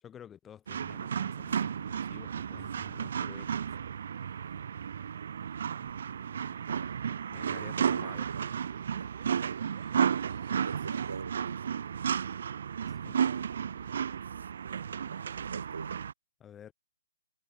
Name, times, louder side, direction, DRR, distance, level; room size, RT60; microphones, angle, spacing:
voice 1, 0.0-3.8 7.3-8.3 12.9-13.3 13.8-14.0 16.4-16.7, left 9 dB, 10° left, 1.1 m, -51 dB
sound 1, 0.7-16.1, right 7 dB, 45° right, 0.7 m, -33 dB
sound 2, 1.6-11.2, right 14 dB, 25° right, 5.5 m, -57 dB
Bass guitar, 2.2-8.4, right 5 dB, 65° right, 7.8 m, -58 dB
voice 2, 6.6-7.0 7.4-8.5 9.0-9.4 10.5-11.7 14.2-16.0, right 5 dB, 80° right, 1.5 m, -44 dB
hypercardioid pair, 175°, 0 cm